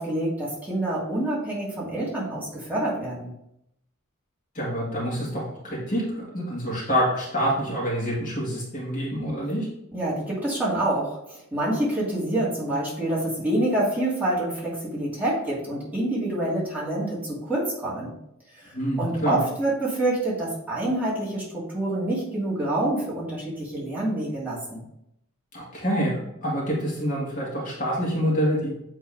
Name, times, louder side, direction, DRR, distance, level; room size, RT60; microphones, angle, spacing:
voice 1, 0.0-3.3 9.9-18.1 18.5-24.8, right 1 dB, 10° right, -8 dB, 2.3 m, -27 dB
voice 2, 4.5-9.7 18.7-19.4 25.5-28.7, equal, 40° left, -5 dB, 2.1 m, -27 dB
8.5 x 3.6 x 3.6 m, 0.78 s
head